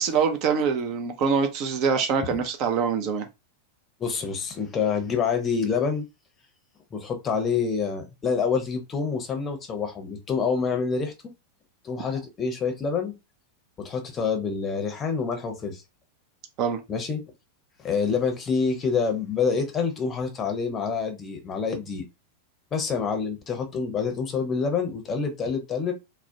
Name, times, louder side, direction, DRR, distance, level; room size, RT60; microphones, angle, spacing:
voice 1, 0.0-3.3 16.6-16.8, right 6 dB, 40° right, 0.4 m, -24 dB
voice 2, 4.0-6.1 6.9-11.1 11.8-13.1 13.8-15.8 16.9-17.2 17.8-22.0 22.7-25.9, left 5 dB, 25° left, 0.6 m, -27 dB
2.3 x 2.0 x 2.7 m
figure-of-eight pair, 90°, 0 cm